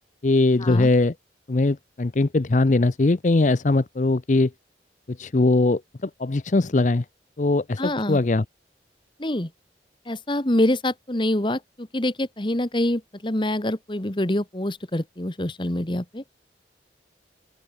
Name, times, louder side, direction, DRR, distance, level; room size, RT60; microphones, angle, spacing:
voice 1, 0.2-1.1 1.5-4.5 5.1-7.0 7.4-8.4, left 2 dB, 45° left, 0.6 m, -21 dB
voice 2, 7.8-8.2 9.2-9.5 10.1-16.2, left 1 dB, 25° left, 1.5 m, -25 dB
open air
head